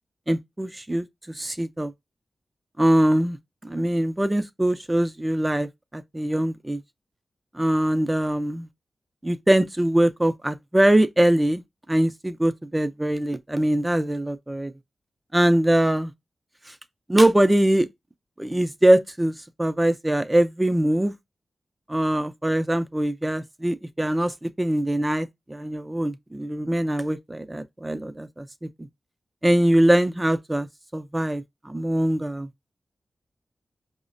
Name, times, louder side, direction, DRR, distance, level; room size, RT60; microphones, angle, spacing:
voice 1, 0.3-1.1 1.4-1.9 2.8-3.4 3.6-6.8 7.5-8.7 9.2-11.6 11.9-14.7 15.3-16.1 17.1-17.9 18.4-19.3 19.6-21.1 21.9-28.7 29.4-30.7 30.9-32.5, right 1 dB, 20° right, 0.5 m, -22 dB
4.7 x 2.1 x 2.5 m
cardioid pair, 40°, 0 cm